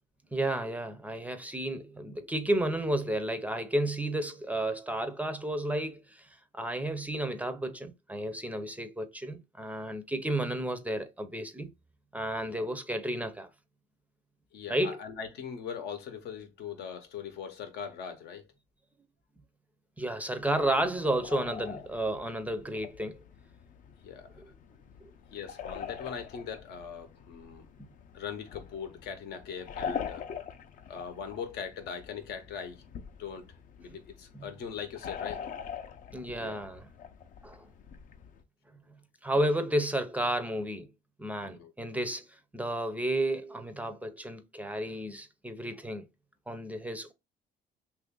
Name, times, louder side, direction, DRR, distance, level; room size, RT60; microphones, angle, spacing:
voice 1, 0.3-6.3 6.5-11.7 12.1-13.5 14.7-15.0 20.0-23.2 24.4-24.5 36.1-36.8 37.4-37.6 39.2-40.9 41.2-42.3 42.5-46.1 46.5-47.1, right 1 dB, 10° right, 0.4 m, -32 dB
voice 2, 14.5-18.5 24.0-24.4 25.3-27.7 28.1-30.3 30.9-32.8 33.2-35.4 36.4-36.6 41.4-41.7, left 7 dB, 75° left, 0.8 m, -41 dB
sound 1, 20.4-38.4, left 7 dB, 50° left, 0.5 m, -44 dB
2.9 x 2.5 x 3.6 m
cardioid pair, 110°, 17 cm